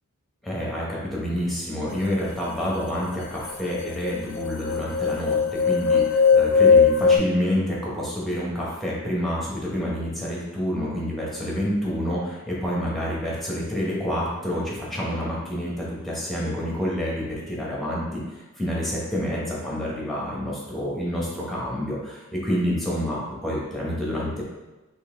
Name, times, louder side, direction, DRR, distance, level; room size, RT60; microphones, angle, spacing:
voice 1, 0.4-24.4, equal, ahead, -6 dB, 1.0 m, -28 dB
sound 1, 3.1-3.2 3.4-7.2, left 5 dB, 75° left, 0.4 m, -19 dB
4.0 x 3.0 x 3.6 m, 1.1 s
head